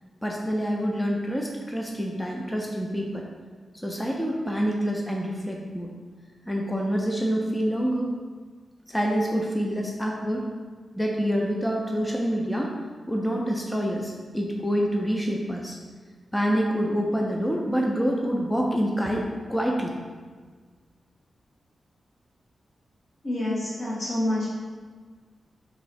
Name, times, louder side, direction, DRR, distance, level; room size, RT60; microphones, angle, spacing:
voice 1, 0.2-3.3 3.8-5.9 6.5-8.1 8.9-10.5 10.9-12.7 13.1-15.8 16.3-20.0, equal, 10° left, -1 dB, 0.4 m, -26 dB
voice 2, 23.2-24.5, left 1 dB, 80° left, -8 dB, 1.5 m, -27 dB
3.0 x 2.7 x 4.1 m, 1.5 s
wide cardioid pair, 115°, 0 cm